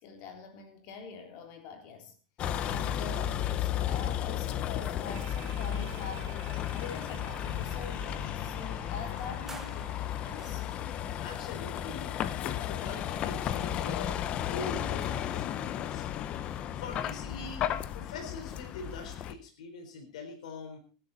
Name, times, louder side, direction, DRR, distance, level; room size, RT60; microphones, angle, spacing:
voice 1, 0.0-2.1 2.6-6.3 6.7-10.7, left 5 dB, 50° left, 5 dB, 3.7 m, -44 dB
Vehicle, 2.4-19.3, left 10 dB, 30° left, 0.8 m, -34 dB
sound 1, 5.1-11.2, right 6 dB, 55° right, 3.1 m, -50 dB
sound 2, 9.1-11.0 11.7-12.9 13.2-15.4, right 4 dB, 10° right, 1.4 m, -54 dB
voice 2, 11.2-16.1 16.8-20.8, left 4 dB, 85° left, 5 dB, 4.3 m, -43 dB
19.0 x 11.5 x 4.1 m, 0.37 s
supercardioid pair, 155°, 4 cm